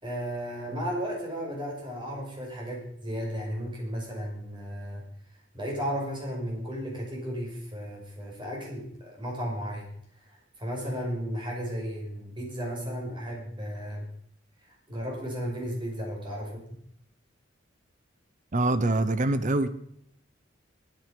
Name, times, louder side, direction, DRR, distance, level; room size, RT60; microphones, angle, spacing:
voice 1, 0.0-5.0 5.5-9.9 10.3-14.1 14.9-16.6, equal, 25° right, -1 dB, 5.7 m, -34 dB
voice 2, 18.5-19.7, right 2 dB, 40° right, 13 dB, 0.9 m, -24 dB
21.0 x 9.3 x 5.2 m, 0.69 s
head